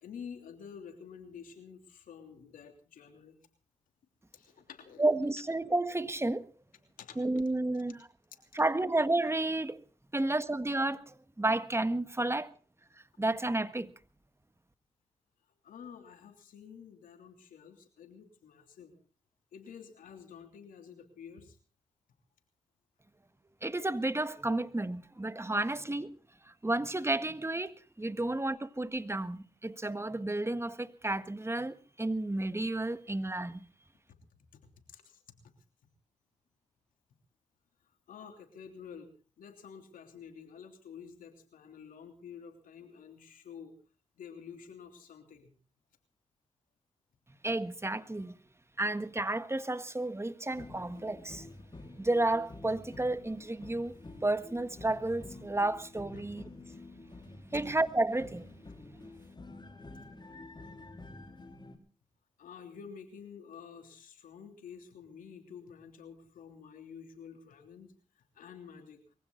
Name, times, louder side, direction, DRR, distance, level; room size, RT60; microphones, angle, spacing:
voice 1, 0.0-3.4 4.3-5.1 7.0-7.2 15.6-19.0 19.5-21.6 34.5-34.6 34.9-35.2 38.1-39.1 39.4-43.7 44.2-45.5 56.1-56.2 57.5-57.7 62.4-67.9 68.3-69.0, left 7 dB, 90° left, 3.1 m, -49 dB
voice 2, 5.0-6.5 7.1-8.1 8.5-9.8 10.1-12.5 13.2-13.9 23.6-26.1 26.4-33.7 47.4-48.4 48.8-51.5 52.0-54.0 54.2-56.4 57.5-58.5 58.9-59.0, right 2 dB, 20° right, 1.6 m, -31 dB
sound 1, 50.5-61.8, left 2 dB, 35° left, 4.3 m, -49 dB
22.5 x 15.5 x 3.9 m
supercardioid pair, 40°, 13 cm